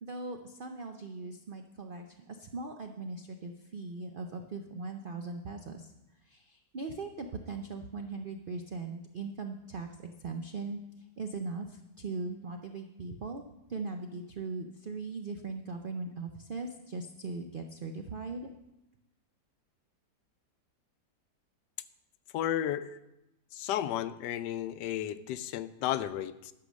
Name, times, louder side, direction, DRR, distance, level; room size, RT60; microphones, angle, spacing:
voice 1, 0.0-5.9 6.2-10.8 11.2-13.4 13.7-18.5, right 3 dB, 70° right, 5 dB, 0.5 m, -39 dB
voice 2, 22.3-23.0 23.5-26.5, left 11 dB, 80° left, 13 dB, 1.2 m, -33 dB
11.5 x 6.9 x 6.3 m, 0.92 s
omnidirectional pair, 1.9 m